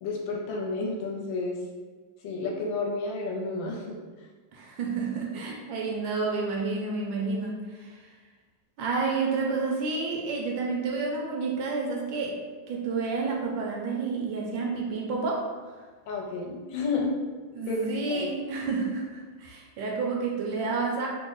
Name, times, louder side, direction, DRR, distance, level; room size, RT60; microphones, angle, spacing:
voice 1, 0.0-1.7 2.2-4.0 16.1-17.1 17.7-18.3, left 3 dB, 75° left, -1 dB, 1.3 m, -31 dB
voice 2, 4.5-8.0 8.8-12.4 12.7-15.5 17.5-21.1, right 4 dB, 75° right, -1 dB, 1.2 m, -30 dB
3.4 x 2.0 x 3.8 m, 1.4 s
omnidirectional pair, 2.1 m